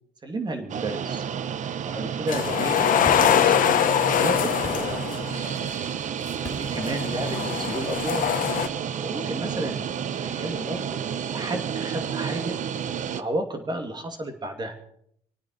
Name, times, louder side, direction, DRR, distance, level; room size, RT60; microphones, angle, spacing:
voice 1, 0.2-1.2 1.7-3.6 3.9-5.7 6.5-8.3 9.0-9.8 10.1-12.6 13.1-14.8, right 1 dB, 25° right, 5 dB, 2.6 m, -33 dB
sound 1, 0.7-13.2, right 8 dB, 45° right, 0.8 m, -31 dB
sound 2, 2.3-5.6 6.5-8.7, left 9 dB, 55° left, 1.2 m, -23 dB
sound 3, 3.0-3.9 4.4-5.7 6.4-7.1 8.6-8.7, left 2 dB, 15° left, 3.6 m, -39 dB
27.0 x 9.2 x 4.8 m, 0.68 s
cardioid pair, 110°, 17 cm